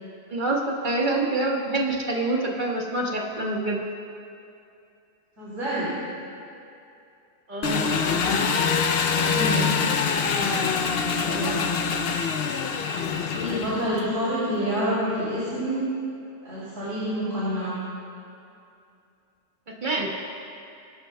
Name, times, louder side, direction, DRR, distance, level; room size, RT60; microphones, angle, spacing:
voice 1, 0.3-3.8 7.5-7.9 13.5-13.7 19.7-20.1, right 2 dB, 40° right, -1 dB, 1.5 m, -26 dB
voice 2, 5.4-5.9 7.9-8.5 9.1-9.7 10.3-11.6 13.3-15.8 16.4-17.8, equal, 85° right, -10 dB, 3.4 m, -28 dB
Engine, 7.6-14.1, left 6 dB, 60° left, 0.7 m, -25 dB
22.5 x 11.5 x 2.2 m, 2.6 s
omnidirectional pair, 1.3 m